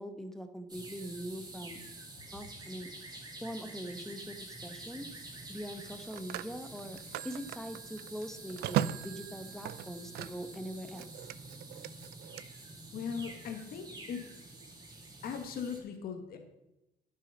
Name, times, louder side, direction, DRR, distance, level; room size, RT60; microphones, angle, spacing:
voice 1, 0.0-1.8 2.3-2.9 3.4-4.4 4.6-5.1 5.5-7.0 7.2-11.0, equal, ahead, 8 dB, 1.1 m, -42 dB
sound 1, 0.7-15.8, right 2 dB, 25° right, 2.4 m, -48 dB
Telephone, 3.5-3.8 5.7-10.6 10.9-12.4, right 12 dB, 75° right, 0.5 m, -38 dB
voice 2, 12.9-14.3 15.2-16.4, left 6 dB, 60° left, 5 dB, 1.5 m, -39 dB
11.0 x 6.4 x 5.4 m, 0.91 s
cardioid pair, 110°, 17 cm